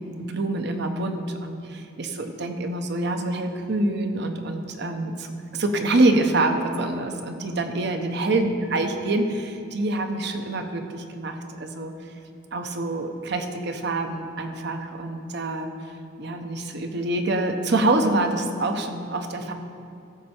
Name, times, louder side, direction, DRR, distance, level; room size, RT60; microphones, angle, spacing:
voice 1, 0.0-11.3 11.6-11.9 12.5-15.7 16.2-19.5, right 2 dB, 60° right, 6 dB, 0.8 m, -26 dB
14.0 x 6.4 x 4.4 m, 2.6 s
head